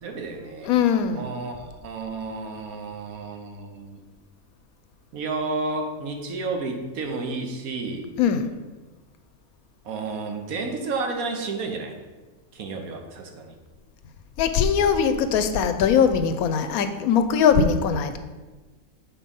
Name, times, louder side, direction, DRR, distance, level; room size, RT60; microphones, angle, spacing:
voice 1, 0.0-0.7 1.1-4.0 5.1-8.1 9.8-11.9 12.5-13.6, right 3 dB, 80° right, 4 dB, 1.4 m, -31 dB
voice 2, 0.6-1.4 8.2-8.5 14.4-18.2, left 7 dB, 90° left, 9 dB, 1.1 m, -21 dB
7.3 x 4.5 x 5.3 m, 1.3 s
omnidirectional pair, 1.5 m